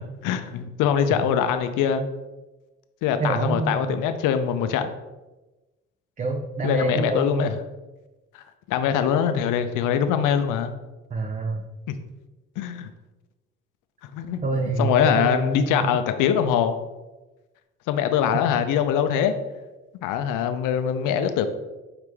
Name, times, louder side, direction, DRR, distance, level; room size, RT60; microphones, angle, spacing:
voice 1, 0.2-2.0 3.0-4.9 6.6-7.6 8.7-10.7 11.9-12.0 12.6-12.9 14.1-16.8 17.9-19.3 20.0-21.4, left 8 dB, 55° left, 9 dB, 0.6 m, -23 dB
voice 2, 3.2-4.0 6.2-7.5 11.1-11.6 14.4-16.0, right 4 dB, 20° right, 2 dB, 0.5 m, -27 dB
4.8 x 3.1 x 3.4 m, 1.1 s
hypercardioid pair, 55°, 37 cm